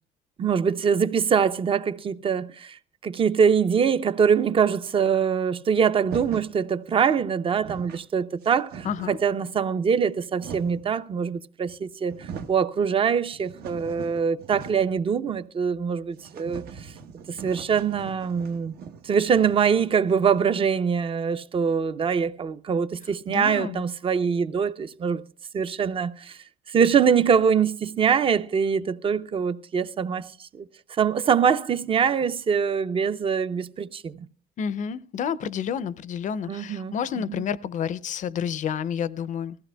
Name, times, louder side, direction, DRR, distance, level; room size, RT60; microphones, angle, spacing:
voice 1, 0.4-16.9 17.3-18.7 19.0-25.2 25.5-26.4 26.7-30.7 31.0-34.1 36.5-36.9, right 6 dB, 30° right, 0.5 m, -23 dB
sound 1, 6.0-6.6 7.2-7.3 7.5-8.1 8.4-9.3 10.0-10.9 11.7-11.8 12.0-12.6 13.1-15.0 15.3-15.4 15.7-15.8 16.2-20.7, right 6 dB, 70° right, 0.9 m, -41 dB
voice 2, 8.8-9.2 23.3-23.8 34.6-39.6, left 8 dB, 50° left, 0.5 m, -30 dB
20.0 x 14.5 x 2.2 m
cardioid pair, 110°, 17 cm